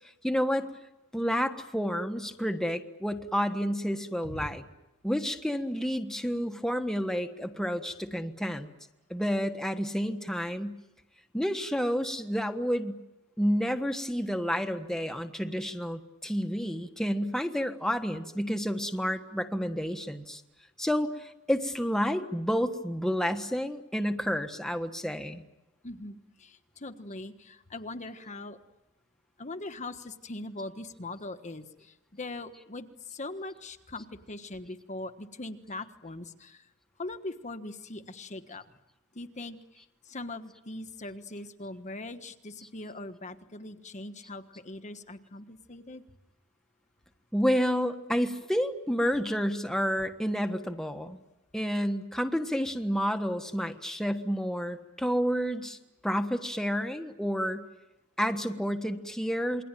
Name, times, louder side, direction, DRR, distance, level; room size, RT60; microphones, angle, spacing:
voice 1, 0.2-0.7 1.1-4.6 5.0-8.7 9.1-10.8 11.3-12.9 13.4-20.4 20.8-25.4 47.3-51.2 51.5-55.8 56.0-57.7 58.2-59.6, equal, ahead, 6 dB, 1.4 m, -30 dB
voice 2, 25.8-28.6 29.4-36.7 37.0-38.6 39.1-39.6 40.0-46.0, left 2 dB, 35° left, 8 dB, 1.4 m, -41 dB
28.0 x 22.5 x 9.1 m, 0.96 s
head